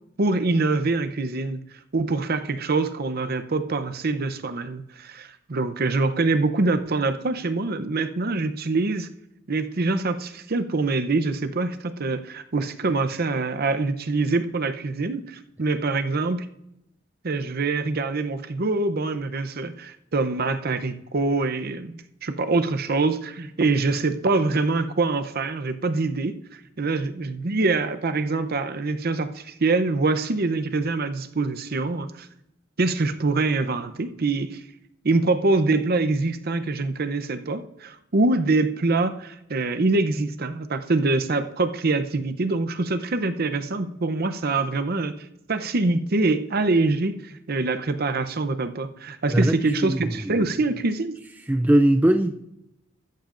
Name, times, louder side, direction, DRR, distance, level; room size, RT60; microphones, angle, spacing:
voice 1, 0.2-1.6 1.9-9.1 9.5-16.5 17.2-32.3 32.8-34.6 35.0-45.1 45.5-51.2, right 3 dB, 50° right, 0.7 m, -24 dB
voice 2, 49.3-50.5 51.5-52.3, right 1 dB, 10° right, 0.3 m, -21 dB
14.5 x 13.0 x 2.5 m
head